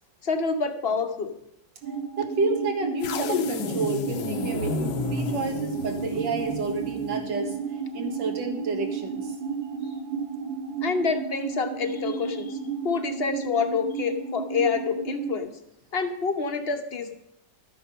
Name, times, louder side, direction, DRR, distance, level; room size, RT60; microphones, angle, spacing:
voice 1, 0.2-1.3 10.8-12.6 12.8-15.5 15.9-17.2, left 5 dB, 40° left, 6 dB, 1.0 m, -27 dB
sound 1, 1.8-15.4, right 6 dB, 90° right, 2.3 m, -33 dB
voice 2, 2.2-9.4, right 3 dB, 75° right, 4 dB, 2.3 m, -30 dB
sound 2, 3.0-7.3, left 5 dB, 75° left, 1.4 m, -31 dB
13.0 x 9.1 x 5.6 m, 0.78 s
omnidirectional pair, 2.0 m